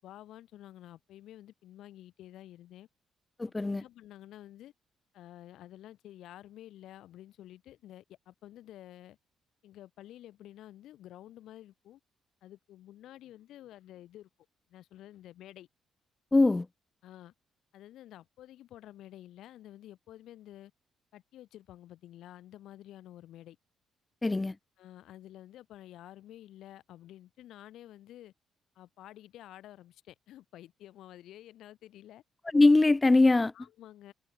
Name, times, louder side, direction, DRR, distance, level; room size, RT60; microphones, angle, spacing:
voice 1, 0.0-2.9 3.5-4.7 5.1-9.2 9.6-12.0 12.4-14.3 14.7-15.7 17.0-17.3 17.7-20.7 21.1-23.6 24.8-28.3 28.8-32.2 33.5-34.1, left 13 dB, 80° left, 7.0 m, -51 dB
voice 2, 3.4-3.8 16.3-16.7 24.2-24.5 32.5-33.5, left 2 dB, 15° left, 0.7 m, -22 dB
cardioid pair, 105°, 0 cm